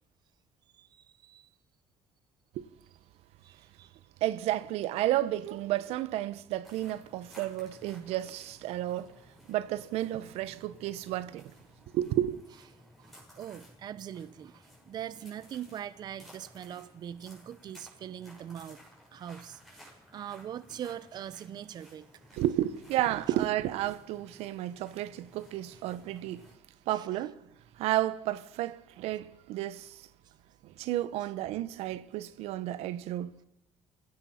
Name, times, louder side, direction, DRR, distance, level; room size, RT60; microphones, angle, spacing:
voice 1, 0.7-1.4 3.4-4.0 13.0-18.8 19.1-22.1 26.9-27.1, right 10 dB, 40° right, 0.7 m, -42 dB
voice 2, 4.2-9.1 9.5-11.5 11.9-12.4 22.3-26.5 26.9-27.4 27.8-30.1 30.6-33.4, right 14 dB, 80° right, 1.0 m, -32 dB
sound 1, 6.6-26.6, equal, ahead, 6.9 m, -57 dB
27.0 x 16.5 x 5.8 m
cardioid pair, 160°, 10 cm